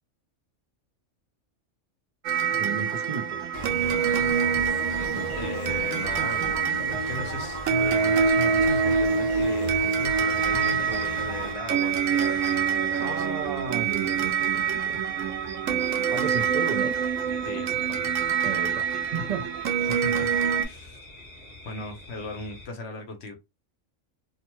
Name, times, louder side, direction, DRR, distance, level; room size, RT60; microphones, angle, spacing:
sound 1, 2.2-20.6, right 6 dB, 85° right, 1.0 m, -25 dB
voice 1, 2.5-3.6 5.0-5.4 13.0-15.0 16.1-16.9 18.4-19.5 19.8-19.9, right 6 dB, 50° right, 0.5 m, -34 dB
sound 2, 3.5-11.5, left 2 dB, 40° left, 1.2 m, -37 dB
voice 2, 5.4-13.3 17.4-18.1 19.9-20.3 20.6-21.0 21.6-23.3, left 2 dB, 60° left, 0.9 m, -37 dB
sound 3, 10.4-22.7, left 1 dB, 10° left, 1.1 m, -45 dB
2.7 x 2.1 x 3.0 m
omnidirectional pair, 1.3 m